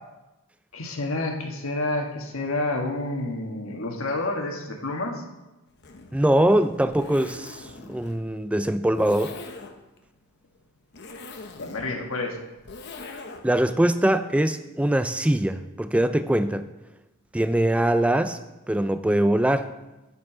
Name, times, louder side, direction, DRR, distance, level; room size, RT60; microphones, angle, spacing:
voice 1, 0.7-5.2 11.6-12.4, left 2 dB, 65° left, 2 dB, 1.5 m, -29 dB
Zipper (clothing), 5.7-13.6, left 3 dB, 50° left, 0.9 m, -43 dB
voice 2, 6.1-9.4 13.4-16.7 17.3-18.4 18.7-19.7, right 1 dB, 5° right, 11 dB, 0.3 m, -22 dB
9.9 x 7.1 x 4.9 m, 1.0 s
head